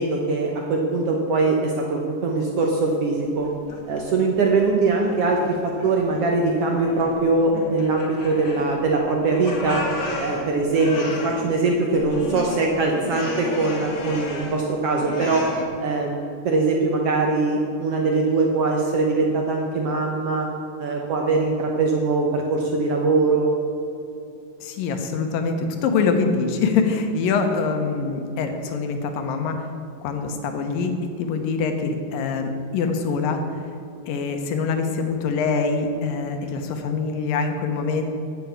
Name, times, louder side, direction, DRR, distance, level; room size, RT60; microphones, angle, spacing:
voice 1, 0.0-3.5 3.9-9.8 10.2-15.5 15.8-20.5 20.8-23.5, right 3 dB, 70° right, 0 dB, 1.5 m, -22 dB
sound 1, 3.2-4.0 4.4-5.5 5.8-6.3 6.6-7.2 7.5-9.0 9.2-11.5 11.9-14.6 15.0-15.7, left 2 dB, 50° left, 1.7 m, -33 dB
voice 2, 24.6-29.7 30.0-33.4 34.1-38.0, left 4 dB, 80° left, 6 dB, 2.7 m, -24 dB
9.5 x 8.5 x 8.0 m, 2.6 s
omnidirectional pair, 3.9 m